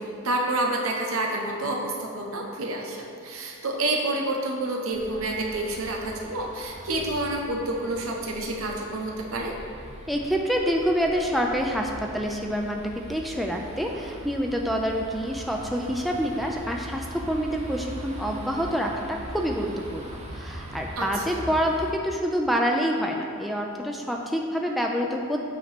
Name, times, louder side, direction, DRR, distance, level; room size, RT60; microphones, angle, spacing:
voice 1, 0.0-9.5 21.0-21.4, right 2 dB, 70° right, 0 dB, 0.9 m, -29 dB
sound 1, 4.9-21.9, right 1 dB, 30° right, 0.8 m, -41 dB
voice 2, 10.1-25.4, equal, ahead, 0 dB, 0.3 m, -27 dB
8.3 x 3.0 x 5.8 m, 2.5 s
head